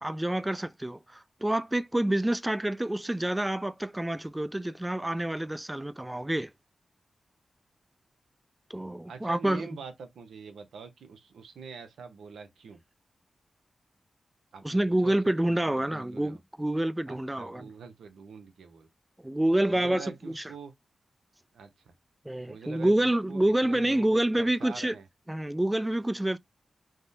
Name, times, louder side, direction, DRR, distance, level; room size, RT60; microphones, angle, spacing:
voice 1, 0.0-6.5 8.7-9.7 14.6-17.7 19.2-20.4 22.3-25.0 25.3-26.4, right 1 dB, 15° right, 0.4 m, -28 dB
voice 2, 9.1-12.8 14.5-16.4 17.1-18.9 19.7-20.7 21.5-21.9 22.5-25.1, right 5 dB, 85° right, 0.6 m, -45 dB
3.4 x 2.1 x 2.6 m
supercardioid pair, 40°, 0 cm